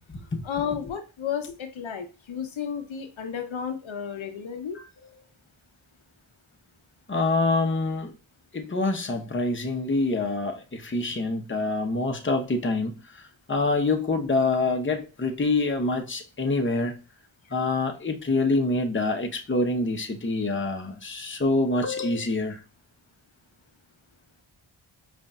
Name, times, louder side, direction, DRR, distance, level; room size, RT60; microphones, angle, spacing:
voice 1, 0.4-4.8, left 8 dB, 70° left, 0.8 m, -32 dB
voice 2, 7.1-8.1 8.5-13.0 13.5-17.0 17.5-22.6, left 3 dB, 25° left, 0.8 m, -26 dB
5.1 x 2.6 x 2.3 m
cardioid pair, 40°, 49 cm